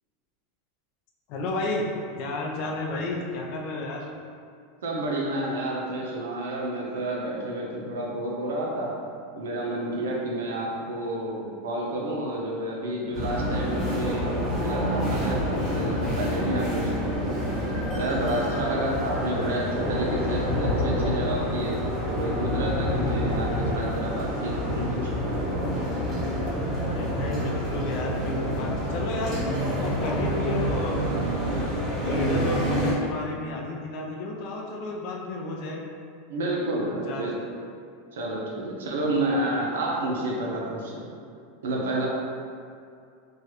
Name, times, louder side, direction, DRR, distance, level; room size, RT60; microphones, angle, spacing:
voice 1, 1.3-1.9 2.2-4.1 18.4-18.9 26.9-31.0 31.5-31.6 32.0-35.8 36.9-37.3 39.0-39.1, left 2 dB, 55° left, 0 dB, 0.5 m, -32 dB
voice 2, 4.8-8.9 9.3-17.4 17.9-25.1 36.3-37.6 38.1-41.1 41.6-42.1, right 1 dB, 90° right, -3 dB, 0.6 m, -30 dB
sound 1, 13.1-32.9, equal, 20° right, 1.5 m, -27 dB
3.1 x 2.3 x 2.8 m, 2.4 s
supercardioid pair, 125°, 0 cm